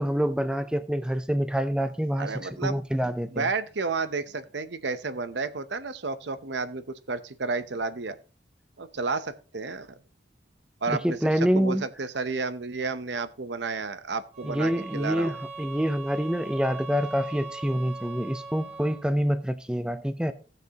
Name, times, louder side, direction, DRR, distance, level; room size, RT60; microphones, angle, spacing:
voice 1, 0.0-3.5 10.9-11.8 14.4-20.3, equal, 5° right, 0.5 m, -27 dB
voice 2, 2.2-2.8 3.3-8.2 8.8-10.0 10.8-11.2 11.5-15.4, right 4 dB, 70° right, 0.8 m, -31 dB
sound 1, 14.3-19.1, right 4 dB, 35° right, 3.2 m, -40 dB
16.5 x 6.7 x 2.9 m
head